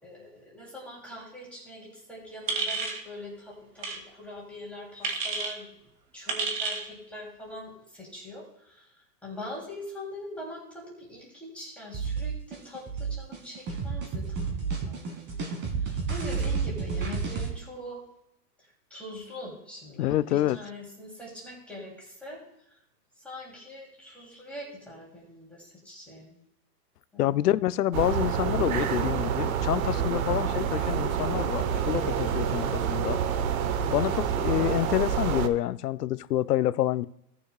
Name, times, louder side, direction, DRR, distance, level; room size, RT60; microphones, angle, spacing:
voice 1, 0.0-5.8 6.1-8.9 9.2-15.5 15.8-18.0 18.9-22.4 23.2-26.3 27.1-27.4, left 1 dB, ahead, 2.9 m, -43 dB
sound 1, 2.5-3.0 3.8-4.0 5.0-5.5 6.3-6.8, right 4 dB, 80° right, 2.7 m, -30 dB
sound 2, 11.9-17.5, right 5 dB, 20° right, 1.8 m, -31 dB
voice 2, 20.0-20.6 27.2-33.2 33.9-37.1, left 13 dB, 65° left, 0.6 m, -27 dB
sound 3, 27.9-35.5, right 8 dB, 55° right, 1.1 m, -28 dB
17.5 x 6.8 x 2.3 m
hypercardioid pair, 145°, 50 cm